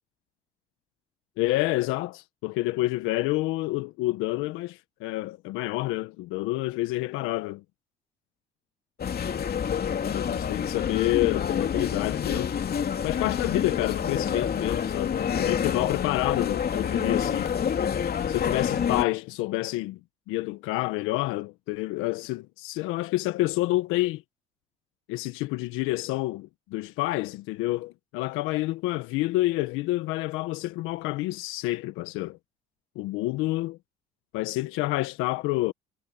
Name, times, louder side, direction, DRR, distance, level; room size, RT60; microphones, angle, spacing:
voice 1, 1.4-7.6 10.1-12.5 13.0-17.5 18.3-20.0 20.3-24.2 25.1-32.4 32.9-33.8 34.3-35.7, left 19 dB, 80° left, 1.3 m, -28 dB
sound 1, 9.0-19.0, left 8 dB, 50° left, 2.8 m, -28 dB
supercardioid pair, 65°, 21 cm